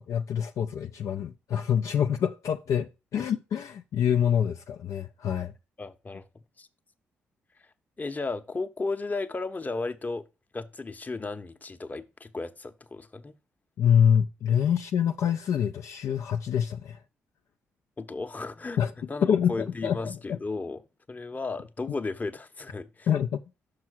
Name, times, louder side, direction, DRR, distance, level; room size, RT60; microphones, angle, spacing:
voice 1, 0.0-5.5 13.8-17.0 18.8-18.9 19.2-20.2 23.1-23.4, left 8 dB, 60° left, 0.4 m, -26 dB
voice 2, 5.8-6.2 6.6-6.7 8.0-10.3 10.5-13.3 18.0-20.8 21.1-23.1, left 3 dB, 25° left, 0.9 m, -34 dB
6.3 x 4.8 x 4.5 m
hypercardioid pair, 40°, 6 cm